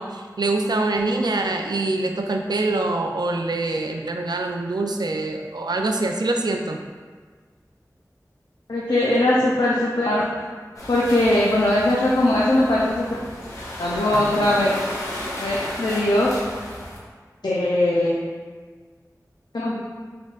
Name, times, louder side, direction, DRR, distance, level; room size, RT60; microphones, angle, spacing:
voice 1, 0.0-6.8, right 2 dB, 80° right, 3 dB, 0.3 m, -24 dB
voice 2, 8.7-10.2 10.9-13.0 13.8-14.7 15.4-16.3 17.4-18.2 19.5-19.8, left 1 dB, 90° left, -6 dB, 0.5 m, -20 dB
sound 1, 10.8-17.0, left 1 dB, 50° left, 1.1 m, -33 dB
4.2 x 3.6 x 2.4 m, 1.5 s
wide cardioid pair, 40°, 7 cm